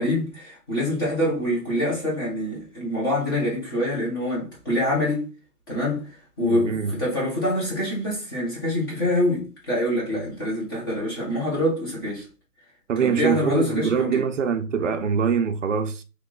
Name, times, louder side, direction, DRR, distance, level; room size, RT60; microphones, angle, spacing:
voice 1, 0.0-5.3 5.7-6.0 6.4-12.2 13.0-14.2, left 1 dB, 15° left, 1.0 m, -25 dB
voice 2, 6.4-7.0 12.9-16.0, right 6 dB, 55° right, 0.6 m, -24 dB
3.2 x 3.0 x 3.7 m
hypercardioid pair, 175°, 46 cm